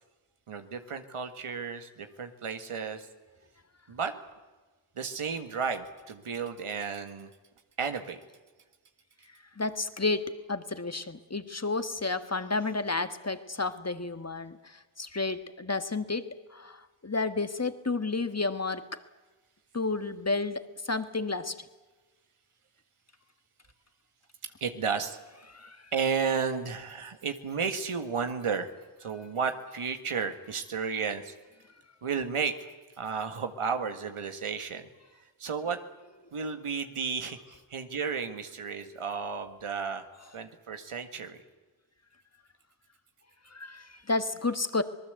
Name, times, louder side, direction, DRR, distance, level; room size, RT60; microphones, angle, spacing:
voice 1, 0.5-3.1 3.9-4.1 5.0-7.3 7.8-8.2 24.4-25.2 25.9-28.7 29.0-31.4 32.0-32.6 33.0-34.9 35.4-35.8 36.3-40.1 40.3-41.4, right 6 dB, 90° right, 7 dB, 1.9 m, -33 dB
voice 2, 9.6-19.0 19.7-21.6 25.5-25.8 43.5-44.8, left 3 dB, 30° left, 10 dB, 1.6 m, -31 dB
26.0 x 19.5 x 8.1 m, 1.2 s
cardioid pair, 40°, 50 cm